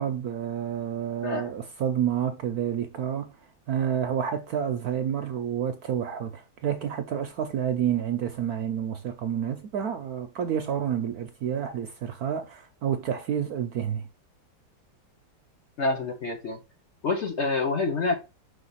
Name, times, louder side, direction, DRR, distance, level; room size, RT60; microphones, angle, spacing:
voice 1, 0.0-3.3 3.7-14.1, right 9 dB, 65° right, 0.9 m, -29 dB
voice 2, 15.8-16.6 17.0-18.2, left 3 dB, 45° left, 1.0 m, -27 dB
5.7 x 3.4 x 5.5 m
omnidirectional pair, 2.1 m